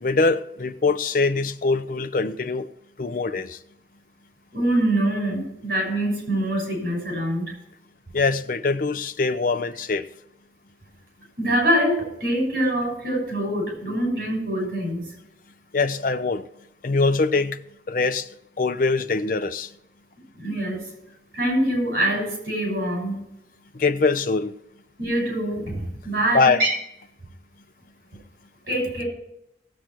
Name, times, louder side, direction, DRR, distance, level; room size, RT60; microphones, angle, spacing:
voice 1, 0.0-2.7 3.0-3.6 8.1-10.1 15.7-16.5 16.8-17.6 17.9-18.3 18.6-19.7 23.7-24.5 26.3-26.6, left 3 dB, 50° left, 0.5 m, -23 dB
voice 2, 4.5-7.5 11.4-15.1 20.3-20.9 21.3-23.2 25.0-26.7 28.6-29.0, right 1 dB, 55° right, 5.9 m, -24 dB
17.5 x 7.7 x 4.5 m
head